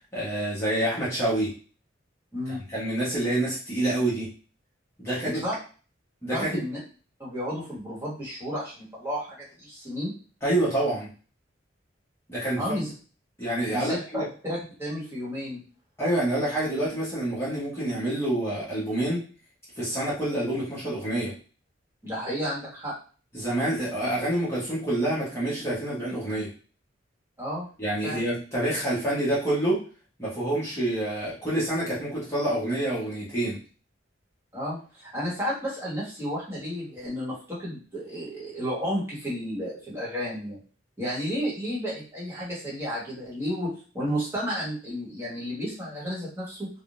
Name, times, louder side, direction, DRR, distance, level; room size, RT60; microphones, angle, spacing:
voice 1, 0.1-1.5 2.5-4.3 5.0-5.4 6.2-6.6 10.4-11.1 12.3-12.7 13.4-14.2 16.0-19.2 19.8-21.3 23.3-26.5 27.8-29.8 30.2-33.6, right 1 dB, 15° left, -9 dB, 1.0 m, -27 dB
voice 2, 5.2-5.6 6.3-6.8 7.2-10.1 12.6-12.9 13.7-15.6 22.0-22.9 27.4-27.7 28.0-28.2 34.5-40.6 41.0-46.7, equal, 15° right, -7 dB, 1.3 m, -32 dB
3.6 x 2.3 x 2.5 m, 0.38 s
head